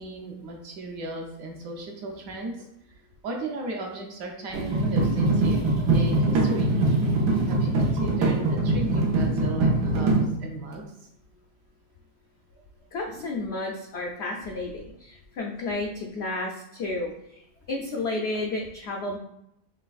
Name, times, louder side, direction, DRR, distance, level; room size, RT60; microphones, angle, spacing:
voice 1, 0.0-2.7 3.2-6.7 7.4-10.1 10.4-11.1, right 2 dB, 65° right, 1 dB, 1.0 m, -36 dB
sound 1, 4.5-10.2, right 2 dB, 90° right, 1.4 m, -22 dB
voice 2, 12.9-19.2, left 2 dB, 80° left, 0 dB, 0.5 m, -32 dB
5.0 x 3.2 x 2.3 m, 0.82 s
omnidirectional pair, 1.7 m